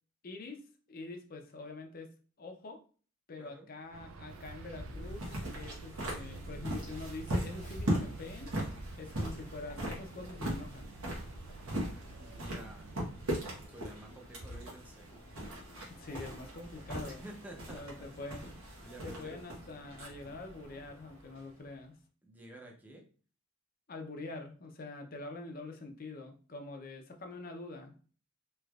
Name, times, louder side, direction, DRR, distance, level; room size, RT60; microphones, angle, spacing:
voice 1, 0.2-2.1 2.4-2.8 3.3-5.3 5.5-8.5 9.0-10.9 16.0-17.2 17.7-18.4 19.0-21.9 23.9-27.9, left 3 dB, 45° left, 4 dB, 0.6 m, -45 dB
voice 2, 3.4-3.7 12.2-12.9 13.7-15.1 17.0-18.1 18.8-19.4 22.2-23.0, right 1 dB, 10° right, 1 dB, 0.5 m, -51 dB
sound 1, 3.9-13.7, right 3 dB, 65° right, 0.3 m, -49 dB
sound 2, 4.0-21.6, right 1 dB, 90° right, 1.2 m, -40 dB
3.3 x 3.0 x 2.3 m, 0.39 s
head